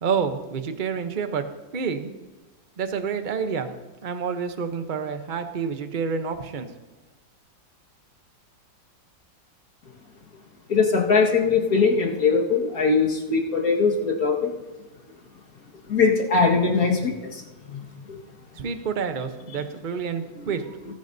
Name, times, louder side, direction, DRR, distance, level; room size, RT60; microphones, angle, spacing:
voice 1, 0.0-1.5 1.7-2.1 2.8-3.7 4.0-6.7 18.6-20.6, right 6 dB, 45° right, 8 dB, 0.6 m, -28 dB
voice 2, 10.7-14.3 15.9-17.1, left 4 dB, 50° left, 0 dB, 2.1 m, -20 dB
19.0 x 10.5 x 2.7 m, 1.1 s
omnidirectional pair, 2.1 m